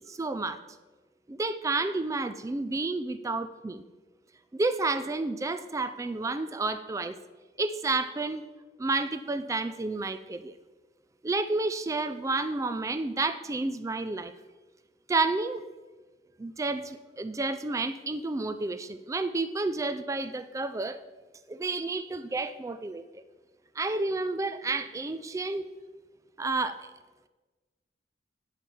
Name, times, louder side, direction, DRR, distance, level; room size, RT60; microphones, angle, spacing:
voice 1, 0.1-0.6 1.3-3.8 4.5-7.2 7.6-8.4 8.8-10.5 11.2-14.3 15.1-15.6 16.4-21.0 21.5-23.0 23.8-25.7 26.4-26.8, right 3 dB, 20° right, 11 dB, 0.3 m, -30 dB
9.8 x 7.3 x 4.5 m, 1.2 s
head